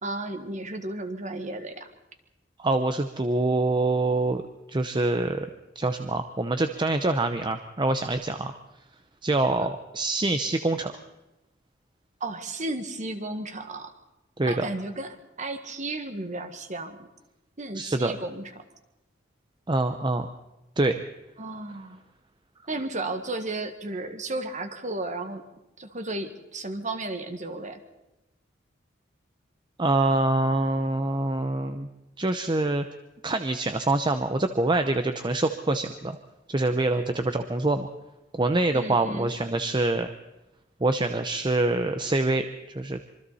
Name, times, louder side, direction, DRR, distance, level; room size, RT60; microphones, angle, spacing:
voice 1, 0.0-1.9 12.2-13.9 14.5-17.1 17.6-18.6 21.4-22.0 22.7-25.4 25.8-27.8 38.7-39.4, right 2 dB, 40° right, 7 dB, 1.8 m, -34 dB
voice 2, 2.6-4.4 4.7-5.5 5.8-8.6 9.2-10.9 14.4-14.6 17.7-18.1 19.7-20.3 20.8-21.0 29.8-31.9 32.2-32.8 33.2-36.2 36.5-37.9 38.3-40.1 40.8-43.0, right 2 dB, 25° right, 8 dB, 0.8 m, -25 dB
26.0 x 24.0 x 4.2 m, 0.97 s
head